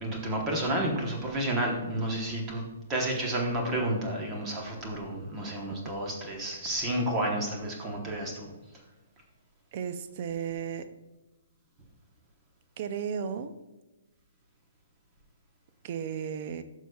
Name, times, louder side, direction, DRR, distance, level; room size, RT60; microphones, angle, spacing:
voice 1, 0.0-2.6 2.9-8.5, right 1 dB, 10° right, 0 dB, 0.9 m, -31 dB
voice 2, 9.7-10.9 12.8-13.5 15.8-16.6, right 7 dB, 30° right, 11 dB, 0.4 m, -34 dB
11.0 x 6.3 x 2.3 m, 1.1 s
hypercardioid pair, 180°, 0 cm